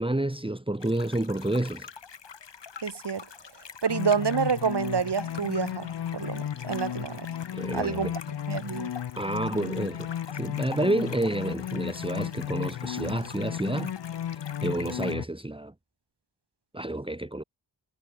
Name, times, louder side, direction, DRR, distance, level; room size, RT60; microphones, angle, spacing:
voice 1, 0.0-1.9 7.5-8.1 9.2-13.9 14.3-15.7 16.7-17.4, right 1 dB, 10° right, 2.1 m, -29 dB
sound 1, 0.8-15.1, left 6 dB, 85° left, 3.3 m, -45 dB
voice 2, 2.8-3.3 3.8-7.3 7.7-8.2 8.5-8.9, right 6 dB, 70° right, 2.1 m, -28 dB
sound 2, 3.9-15.2, left 10 dB, 65° left, 0.7 m, -34 dB
wide cardioid pair, 55°, 42 cm